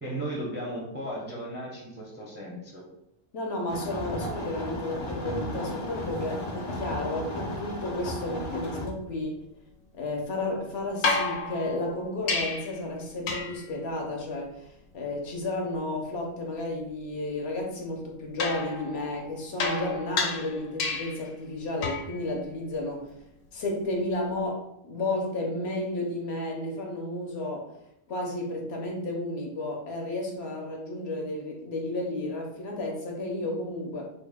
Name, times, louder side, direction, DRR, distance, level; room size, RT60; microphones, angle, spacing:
voice 1, 0.0-2.8, right 1 dB, 15° right, -4 dB, 0.4 m, -35 dB
voice 2, 3.3-9.4 10.0-23.1 23.5-27.8 28.1-34.1, left 1 dB, 65° left, 0 dB, 0.9 m, -32 dB
sound 1, 3.7-8.9, left 1 dB, 45° left, 0.4 m, -35 dB
sound 2, 11.0-12.8 13.3-13.7 18.4-21.3 21.8-22.2 24.2-24.3, left 4 dB, 90° left, 1.0 m, -31 dB
3.3 x 2.1 x 3.4 m, 0.80 s
omnidirectional pair, 1.3 m